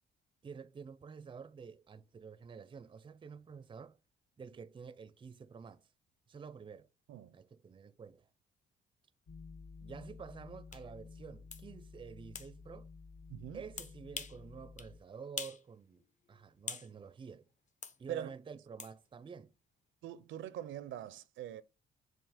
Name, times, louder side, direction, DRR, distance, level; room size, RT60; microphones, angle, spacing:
voice 1, 0.4-4.0 4.4-5.9 6.3-6.9 7.3-8.3 9.8-12.9 13.5-16.0 16.3-17.5 18.0-19.5, right 6 dB, 25° right, 0.5 m, -49 dB
sound 1, 9.3-15.0, left 5 dB, 55° left, 1.2 m, -52 dB
sound 2, 10.7-10.8 11.5-11.6 12.4-12.5 13.8-14.4 14.8-14.9 15.4-15.6 16.0-16.9 17.8-18.0 18.8-18.9, left 5 dB, 40° left, 0.8 m, -43 dB
voice 2, 13.3-13.6 18.1-18.3 20.0-21.6, right 11 dB, 75° right, 0.5 m, -43 dB
7.4 x 2.8 x 4.9 m
cardioid pair, 90°, 20 cm